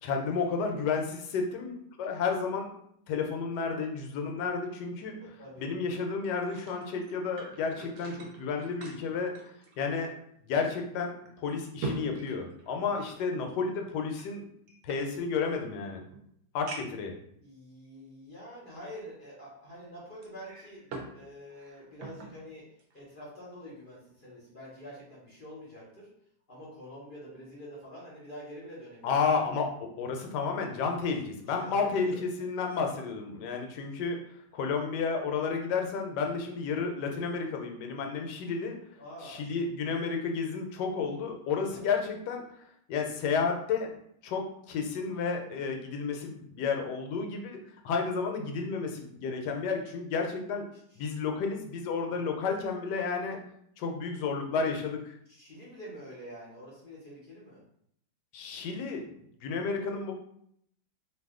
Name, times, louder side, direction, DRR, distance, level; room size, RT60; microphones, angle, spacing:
voice 1, 0.0-2.7 3.1-5.2 5.6-9.3 9.8-10.1 10.4-11.2 11.4-14.5 14.8-16.0 16.5-17.1 29.0-38.7 39.2-42.4 42.9-43.9 44.2-47.6 47.8-50.6 51.0-53.4 53.8-55.1 58.3-59.0 59.4-60.1, left 5 dB, 75° left, 3 dB, 1.2 m, -31 dB
voice 2, 5.2-5.7 12.8-13.1 17.4-22.6 22.9-26.1 26.5-29.3 31.6-32.2 39.0-39.4 41.6-41.9 50.7-51.0 55.3-57.6, equal, 45° left, -5 dB, 0.7 m, -47 dB
sound 1, 6.2-10.2 10.6-10.7 11.3-13.2 14.1-15.6 16.1-16.2 16.7-17.1 17.8-17.9 20.2-21.2 21.5-22.4 22.8-23.0, right 3 dB, 65° right, 0.8 m, -43 dB
2.6 x 2.5 x 3.5 m, 0.70 s
omnidirectional pair, 1.9 m